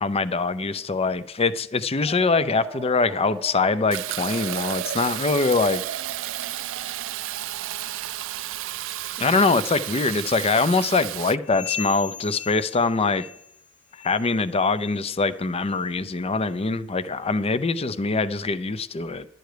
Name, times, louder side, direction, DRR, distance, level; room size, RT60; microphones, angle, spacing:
voice 1, 0.0-5.8 9.2-13.3 14.0-19.3, left 4 dB, 30° left, 14 dB, 0.5 m, -23 dB
sound 1, 2.0-9.4, right 2 dB, 20° right, 0.6 m, -43 dB
Fill (with liquid), 3.9-11.4, right 13 dB, 65° right, 0.3 m, -32 dB
sound 2, 11.4-13.7 13.9-14.3 14.8-15.0 15.6-15.8 16.4-16.5 17.3-17.4, left 8 dB, 90° left, 1.3 m, -37 dB
11.5 x 9.2 x 4.9 m, 0.78 s
head